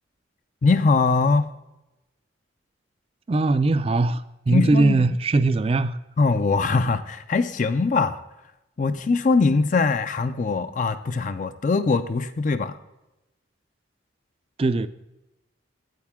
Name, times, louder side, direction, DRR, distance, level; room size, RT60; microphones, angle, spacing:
voice 1, 0.6-1.5 4.5-5.2 6.2-8.2 8.8-12.8, left 4 dB, 40° left, 10 dB, 0.4 m, -22 dB
voice 2, 3.3-6.0 14.6-14.9, right 3 dB, 30° right, 13 dB, 0.4 m, -20 dB
9.1 x 8.1 x 3.6 m, 0.95 s
head